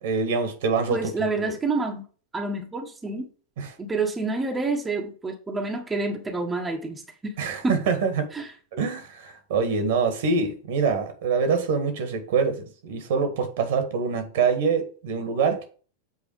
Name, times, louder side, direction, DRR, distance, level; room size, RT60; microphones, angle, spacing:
voice 1, 0.0-1.0 1.4-1.6 3.6-3.7 7.4-8.3 8.7-15.7, right 5 dB, 55° right, 1.9 m, -25 dB
voice 2, 0.9-2.0 2.3-3.3 3.8-7.3 7.6-7.8 8.3-8.5, right 3 dB, 10° right, 1.5 m, -28 dB
8.1 x 4.7 x 4.9 m
figure-of-eight pair, 90°, 0 cm